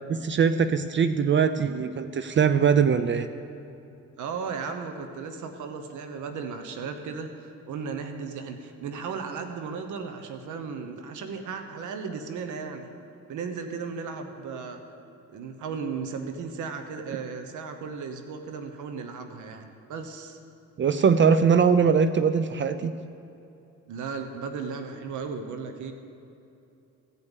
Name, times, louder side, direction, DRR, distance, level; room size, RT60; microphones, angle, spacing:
voice 1, 0.1-3.3 20.8-22.9, right 6 dB, 40° right, 11 dB, 0.5 m, -21 dB
voice 2, 4.2-12.9 13.3-14.8 15.3-20.4 23.9-25.9, right 5 dB, 75° right, 6 dB, 1.1 m, -35 dB
16.0 x 5.4 x 8.1 m, 2.8 s
cardioid pair, 90°, 30 cm